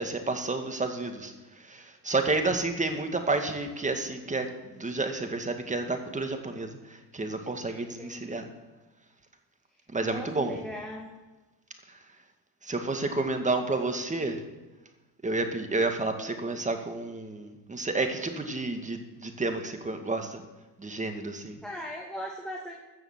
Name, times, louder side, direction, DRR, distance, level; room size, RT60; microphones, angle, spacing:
voice 1, 0.0-8.4 9.9-10.5 11.9-12.0 12.6-14.4 15.2-20.4 20.8-21.6, right 3 dB, 20° right, 6 dB, 1.9 m, -30 dB
voice 2, 7.7-8.5 9.7-11.1 21.4-22.7, equal, ahead, -1 dB, 2.0 m, -40 dB
14.5 x 7.0 x 7.3 m, 1.2 s
supercardioid pair, 95°, 39 cm